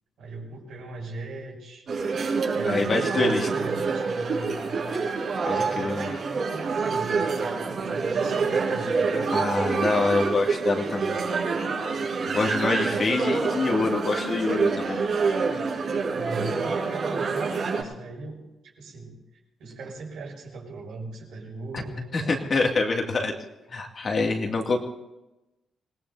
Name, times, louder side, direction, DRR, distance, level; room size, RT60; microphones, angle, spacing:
voice 1, 0.2-1.8 2.5-5.0 5.6-9.3 12.8-13.2 16.1-18.4 18.8-22.5, right 3 dB, 80° right, -1 dB, 6.8 m, -39 dB
sound 1, 1.9-17.8, right 4 dB, 55° right, 5.7 m, -27 dB
voice 2, 2.6-3.5 5.5-6.1 9.3-11.2 12.3-15.0 21.7-21.8 22.1-23.3 23.7-24.8, left 3 dB, 40° left, 1 dB, 2.4 m, -26 dB
26.0 x 19.5 x 2.8 m, 0.98 s
cardioid pair, 120°, 0 cm